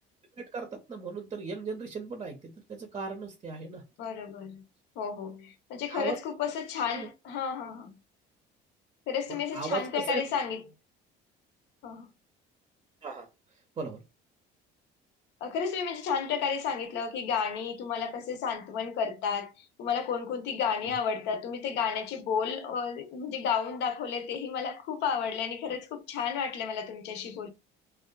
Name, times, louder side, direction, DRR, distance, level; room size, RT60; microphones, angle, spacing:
voice 1, 0.4-3.8 5.9-6.2 7.0-7.1 9.3-10.2 13.0-13.3 13.8-14.0, right 4 dB, 30° right, 0.6 m, -36 dB
voice 2, 4.0-4.6 5.0-8.0 9.1-10.7 11.8-12.1 15.4-27.5, left 6 dB, 70° left, 0.7 m, -32 dB
2.6 x 2.4 x 2.2 m
cardioid pair, 120°, 19 cm